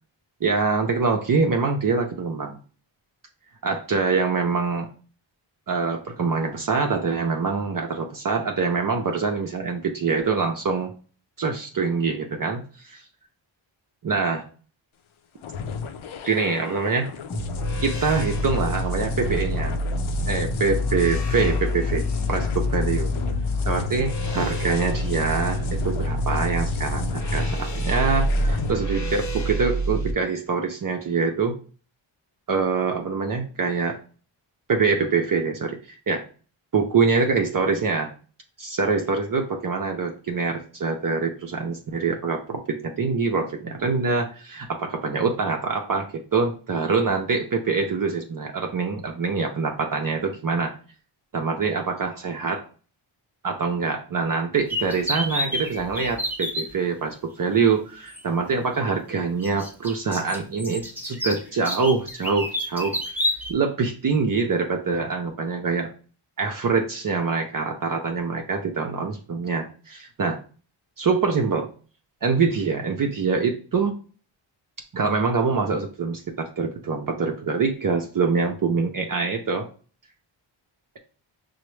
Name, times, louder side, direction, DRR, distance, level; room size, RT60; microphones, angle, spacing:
voice 1, 0.4-2.6 3.6-4.9 5.7-10.9 11.4-13.0 14.0-14.4 16.2-17.1 17.8-19.8 20.3-23.1 23.7-31.6 32.5-34.0 34.7-35.8 36.1-36.2 36.7-38.1 38.6-50.8 51.3-52.7 53.4-63.0 63.5-65.9 66.4-70.4 71.0-71.7 72.2-74.0 74.9-79.7, right 4 dB, 45° right, 2 dB, 0.6 m, -25 dB
sound 1, 15.4-28.7, left 5 dB, 75° left, 0.6 m, -31 dB
sound 2, 17.3-30.1, equal, 35° left, 0.8 m, -27 dB
sound 3, 54.7-56.7 58.1-58.2 59.4-63.5, left 1 dB, 5° right, 0.8 m, -29 dB
5.7 x 2.1 x 3.2 m, 0.39 s
cardioid pair, 65°, 49 cm